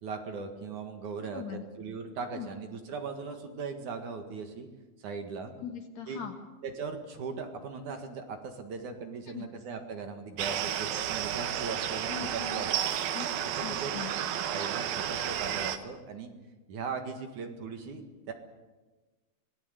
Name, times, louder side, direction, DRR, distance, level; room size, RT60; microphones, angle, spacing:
voice 1, 0.0-4.7 5.0-5.5 6.1-6.2 6.6-12.9 13.6-13.9 14.5-16.3 16.7-18.3, right 5 dB, 60° right, 5 dB, 3.0 m, -39 dB
voice 2, 1.2-1.6 2.3-2.5 5.6-6.4 9.3-9.5 12.1-12.6 13.1-14.1, left 8 dB, 55° left, 5 dB, 2.5 m, -41 dB
sound 1, 10.4-15.8, right 10 dB, 80° right, 3.0 m, -32 dB
25.0 x 18.5 x 8.2 m, 1.2 s
omnidirectional pair, 4.3 m